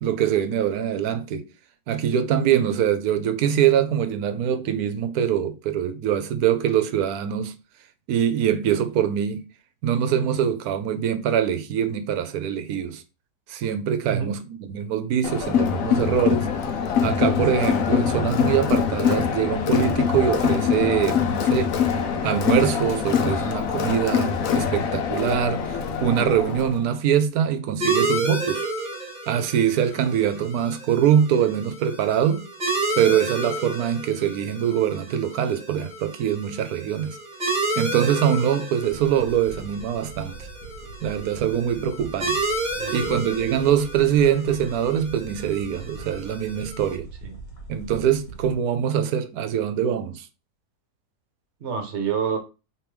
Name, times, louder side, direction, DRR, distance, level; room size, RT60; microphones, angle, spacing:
voice 1, 0.0-1.5 1.9-7.5 8.1-9.5 9.8-13.0 13.5-16.5 17.0-21.8 22.2-28.7 29.3-32.5 33.0-37.2 37.8-40.5 41.0-42.4 42.9-47.1 47.7-50.3, right 9 dB, 75° right, 1.1 m, -23 dB
voice 2, 14.0-14.4 42.8-43.3 47.2-47.4 51.6-52.4, right 7 dB, 50° right, 1.1 m, -28 dB
Crowd, 15.2-26.8, left 7 dB, 65° left, 1.0 m, -23 dB
sound 1, 27.8-47.0, right 2 dB, 30° right, 1.5 m, -31 dB
sound 2, 38.8-48.5, right 3 dB, 40° left, 2.2 m, -42 dB
3.4 x 3.2 x 4.5 m
omnidirectional pair, 1.7 m